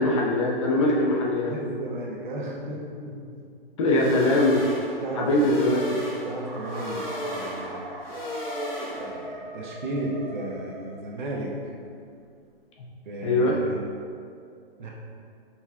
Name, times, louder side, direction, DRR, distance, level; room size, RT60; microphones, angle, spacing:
voice 1, 0.0-1.5 3.8-4.6 5.2-5.8 13.2-13.6, left 1 dB, 30° left, -3 dB, 0.5 m, -22 dB
voice 2, 1.5-3.2 5.0-5.5 5.9-7.8 9.0-11.5 13.0-13.8 14.8-14.9, right 1 dB, 50° right, -3 dB, 0.9 m, -34 dB
sound 1, 3.9-9.3, left 1 dB, 70° left, 1.3 m, -34 dB
sound 2, 6.4-11.4, right 2 dB, 30° right, 0.5 m, -40 dB
5.5 x 3.1 x 2.4 m, 2.3 s
figure-of-eight pair, 125°, 30 cm